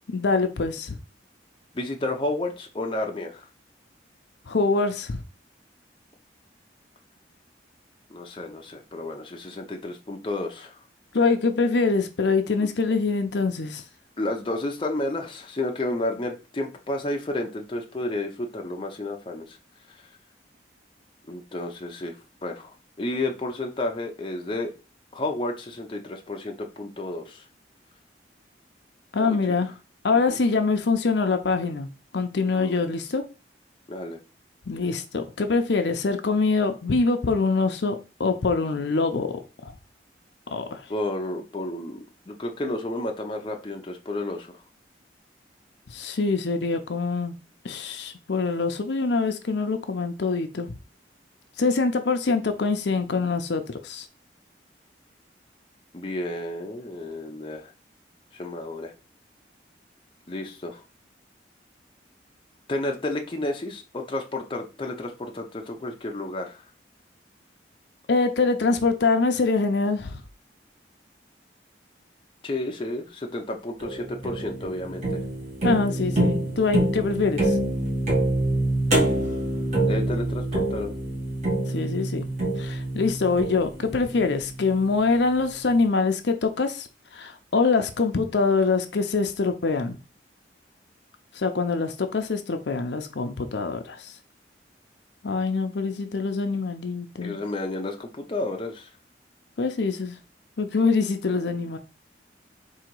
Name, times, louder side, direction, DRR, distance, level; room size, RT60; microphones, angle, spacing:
voice 1, 0.1-1.0 4.5-5.2 11.1-13.8 29.1-29.7 30.0-31.9 32.1-33.2 34.7-39.3 39.6-39.7 40.5-40.8 45.9-47.3 47.6-50.7 51.6-54.1 68.1-70.2 75.6-77.6 81.7-82.3 82.6-86.9 87.1-90.0 91.3-94.1 95.2-97.4 99.6-100.2 100.6-101.8, left 4 dB, 75° left, 0.6 m, -24 dB
voice 2, 1.7-3.4 8.1-10.8 12.6-12.7 14.2-19.6 21.3-22.2 22.4-24.7 25.1-27.4 29.2-29.6 30.1-30.4 32.5-32.9 33.9-34.2 40.9-44.5 55.9-57.7 58.3-58.9 60.3-60.8 62.7-66.6 72.4-75.2 79.8-80.9 97.2-98.9, left 2 dB, 25° left, 0.6 m, -31 dB
sound 1, 73.8-85.0, right 1 dB, 40° right, 1.5 m, -26 dB
3.9 x 2.8 x 4.5 m
head